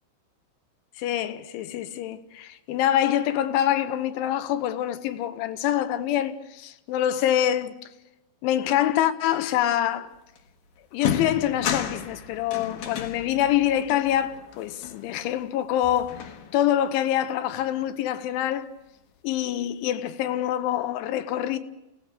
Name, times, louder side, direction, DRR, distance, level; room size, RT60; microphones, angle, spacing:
voice 1, 1.0-7.8 8.4-10.1 10.9-16.2 16.5-18.7 19.2-21.6, left 11 dB, 80° left, 3.3 m, -25 dB
sound 1, 10.4-10.5 10.9-15.5 15.8-16.8, left 8 dB, 60° left, 2.5 m, -33 dB
30.0 x 18.0 x 6.6 m
omnidirectional pair, 5.7 m